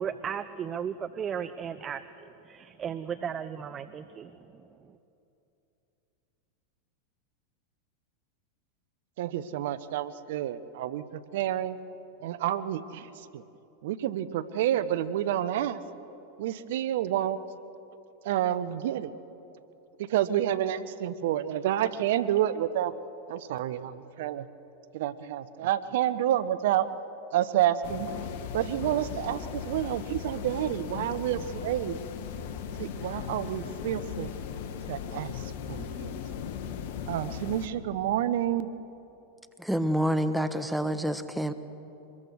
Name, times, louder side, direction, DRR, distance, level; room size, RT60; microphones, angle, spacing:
voice 1, 0.0-5.0, right 7 dB, 30° right, 13 dB, 0.8 m, -36 dB
voice 2, 9.2-11.8 12.2-13.4 13.8-15.8 16.4-17.4 18.2-19.1 20.0-22.9 23.3-24.5 24.9-26.9 27.3-28.1 28.5-32.0 32.8-34.3 34.9-36.1 37.1-38.7, right 11 dB, 70° right, 15 dB, 0.9 m, -29 dB
sound 1, 27.8-37.7, left 8 dB, 65° left, 1.6 m, -37 dB
voice 3, 39.6-41.5, equal, ahead, 10 dB, 1.3 m, -27 dB
25.5 x 21.5 x 6.4 m, 2.9 s
hypercardioid pair, 100°, 0 cm